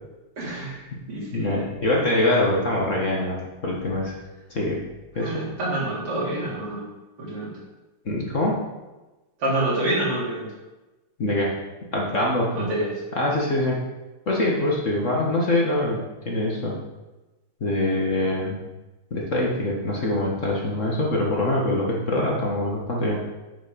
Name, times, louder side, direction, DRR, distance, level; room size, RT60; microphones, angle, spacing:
voice 1, 0.4-1.6 5.2-6.9 7.2-7.6 9.4-10.5 12.5-12.9, right 1 dB, 85° right, -6 dB, 4.4 m, -27 dB
voice 2, 1.3-4.1 4.5-4.8 5.2-5.4 8.1-8.6 11.2-11.5 11.9-12.8 13.1-13.8 14.3-16.8 17.6-18.6 19.1-23.2, left 1 dB, 35° left, -3 dB, 1.8 m, -24 dB
8.5 x 7.3 x 5.3 m, 1.1 s
omnidirectional pair, 2.4 m